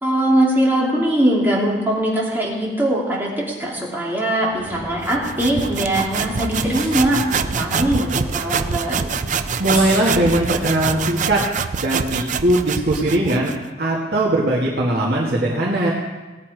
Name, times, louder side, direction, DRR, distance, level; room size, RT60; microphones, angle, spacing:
voice 1, 0.0-9.1, right 1 dB, 10° right, -4 dB, 2.8 m, -21 dB
sound 1, 4.5-11.2, equal, 30° left, 5.3 m, -34 dB
sound 2, 5.0-13.6, right 6 dB, 45° right, 0.5 m, -25 dB
voice 2, 9.6-11.4 11.8-13.5 13.8-15.9, right 1 dB, 65° right, -4 dB, 2.1 m, -19 dB
18.0 x 8.6 x 4.9 m, 1.2 s
head